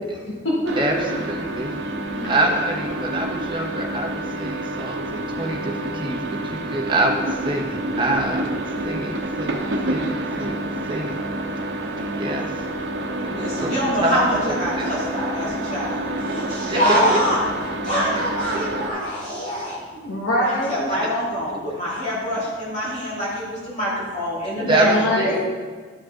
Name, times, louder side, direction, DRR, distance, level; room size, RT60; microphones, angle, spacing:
voice 1, 0.0-0.8 2.1-2.4 16.7-17.1 17.9-18.1 19.9-20.8 24.6-25.3, left 1 dB, 75° left, -5 dB, 1.6 m, -24 dB
sound 1, 0.7-18.9, right 1 dB, 65° right, 0.9 m, -28 dB
voice 2, 0.8-1.7 2.2-8.5 8.8-10.1 10.4-10.6 10.9-11.2 12.0-12.5 13.2-14.2 14.5-14.9 16.7-17.2 18.5-18.6 20.9-21.2 21.5-21.6 24.7-25.4, right 2 dB, 25° right, 0 dB, 1.1 m, -26 dB
voice 3, 13.2-17.4 17.8-19.8 20.4-24.9 25.2-25.4, equal, 40° left, -9 dB, 2.8 m, -25 dB
12.0 x 5.9 x 3.8 m, 1.5 s
head